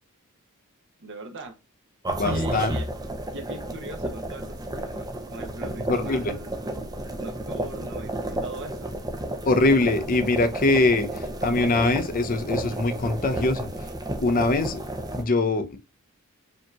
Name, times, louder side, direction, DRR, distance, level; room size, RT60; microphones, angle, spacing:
voice 1, 1.0-1.6 2.2-2.9 3.3-6.7 7.2-8.9, right 2 dB, 55° right, 0.8 m, -40 dB
sound 1, 2.1-15.2, right 1 dB, 20° right, 0.6 m, -32 dB
voice 2, 2.2-2.7 5.9-6.3 9.4-13.7 14.2-14.8 15.1-15.8, left 2 dB, 40° left, 0.6 m, -23 dB
5.1 x 2.9 x 2.3 m
head